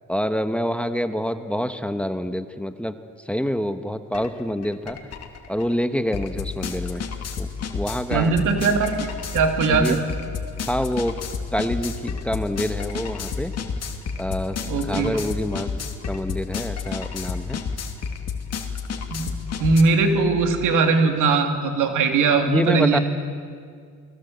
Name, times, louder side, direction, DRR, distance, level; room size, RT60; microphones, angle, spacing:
voice 1, 0.1-2.9 3.2-5.0 5.5-7.0 7.4-8.4 9.7-10.0 10.7-11.2 11.5-13.5 14.2-15.7 16.1-17.6 22.5-23.0, equal, 5° left, 9 dB, 1.2 m, -26 dB
sound 1, 4.1-4.3 4.6-19.8, left 6 dB, 55° left, 2.8 m, -31 dB
voice 2, 8.1-10.0 14.6-15.2 19.1-19.3 19.6-23.0, right 4 dB, 85° right, 4 dB, 3.2 m, -20 dB
29.5 x 21.0 x 8.3 m, 2.1 s
cardioid pair, 90°, 30 cm